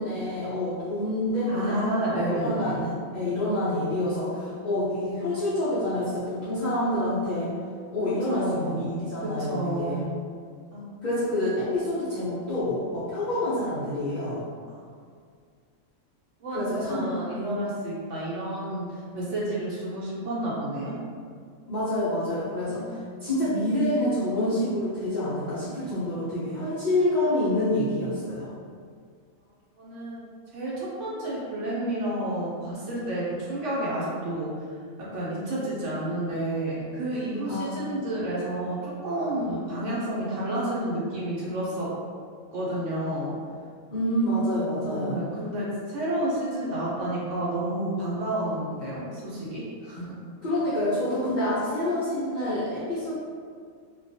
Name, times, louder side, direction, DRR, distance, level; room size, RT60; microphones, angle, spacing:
voice 1, 0.0-1.8 2.1-7.5 7.9-10.1 11.0-14.4 16.5-17.1 21.7-28.5 37.5-37.8 43.9-45.2 50.4-53.1, left 1 dB, 60° left, -12 dB, 0.5 m, -27 dB
voice 2, 1.4-2.8 8.3-8.8 9.2-10.0 10.7-10.8 16.4-18.9 19.1-21.0 22.6-22.9 28.3-28.5 29.8-30.2 30.5-34.5 35.0-41.9 42.5-43.3 44.8-50.2, right 1 dB, 65° right, -7 dB, 1.0 m, -30 dB
2.4 x 2.2 x 2.6 m, 2.1 s
omnidirectional pair, 1.5 m